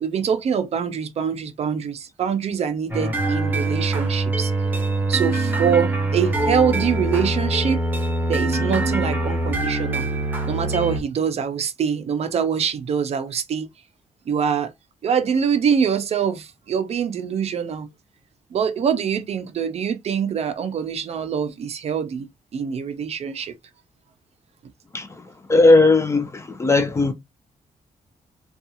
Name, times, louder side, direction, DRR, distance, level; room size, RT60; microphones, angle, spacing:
voice 1, 0.0-4.5 5.1-7.8 8.3-10.1 10.5-13.7 14.3-14.7 15.0-17.9 18.5-23.5, right 7 dB, 50° right, 0.5 m, -24 dB
sound 1, 2.9-11.0, right 2 dB, 15° right, 0.8 m, -23 dB
voice 2, 24.9-27.1, left 2 dB, 20° left, 0.5 m, -17 dB
3.6 x 2.3 x 2.8 m
wide cardioid pair, 170°, 13 cm